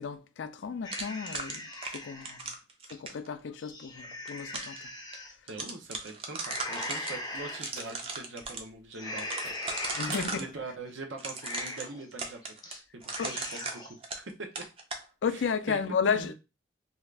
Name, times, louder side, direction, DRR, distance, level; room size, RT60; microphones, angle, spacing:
voice 1, 0.0-2.5 2.9-4.9 10.0-10.5 13.2-13.4 15.2-16.3, left 6 dB, 80° left, 0.4 m, -33 dB
sound 1, 0.8-2.4 2.9-3.0 3.5-5.3 6.4-7.6 8.1-8.4 8.9-10.5 10.9-11.0 11.3-12.0 12.4-12.8 13.0-14.0, left 1 dB, 20° left, 0.5 m, -40 dB
sound 2, 0.9-3.3 4.0-4.8 5.1-5.2 5.5-7.1 7.5-8.6 9.2-10.5 11.2-14.3 14.6-15.0, right 3 dB, 30° right, 0.5 m, -37 dB
voice 2, 5.5-9.8 10.3-14.3 15.7-15.8 16.1-16.3, right 3 dB, 85° right, 0.8 m, -43 dB
sound 3, 6.5-8.2 8.7-8.9 9.4-10.6, right 2 dB, 55° right, 1.2 m, -48 dB
2.7 x 2.4 x 3.3 m
head